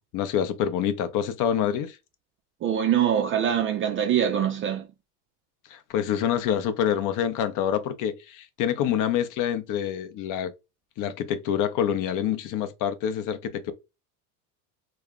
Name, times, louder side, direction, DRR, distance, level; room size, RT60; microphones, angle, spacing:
voice 1, 0.1-2.0 5.7-10.5 11.0-13.7, left 9 dB, 45° left, 0.6 m, -26 dB
voice 2, 2.6-4.8, right 9 dB, 30° right, 0.4 m, -23 dB
2.2 x 2.0 x 3.5 m
supercardioid pair, 95°, 44 cm